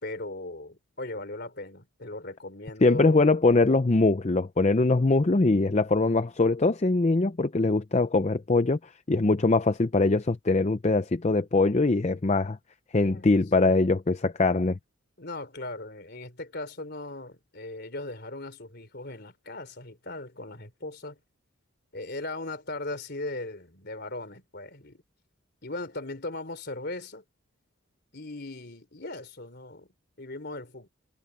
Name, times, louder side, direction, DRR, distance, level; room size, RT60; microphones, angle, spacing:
voice 1, 0.0-3.3 13.0-13.3 15.2-21.2 21.9-25.0 25.6-27.2 28.1-29.9 30.2-30.9, left 2 dB, 50° left, 3.5 m, -38 dB
voice 2, 2.8-8.8 9.1-12.6 12.9-14.8, left 3 dB, 30° left, 0.5 m, -22 dB
head